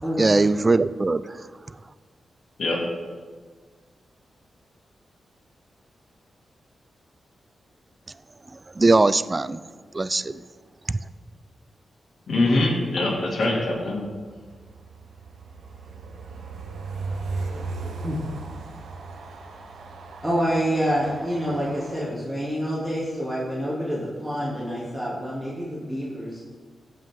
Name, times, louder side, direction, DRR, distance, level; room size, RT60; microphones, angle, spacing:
voice 1, 0.2-1.2 8.8-9.6 9.9-10.4, right 3 dB, 30° right, 15 dB, 0.3 m, -20 dB
voice 2, 12.3-14.1, left 2 dB, 65° left, -3 dB, 2.4 m, -23 dB
Train, 13.9-22.0, right 3 dB, 85° right, 0.9 m, -37 dB
voice 3, 20.2-26.5, equal, 5° right, -8 dB, 2.7 m, -27 dB
14.5 x 5.6 x 3.8 m, 1.5 s
cardioid pair, 65°, 0 cm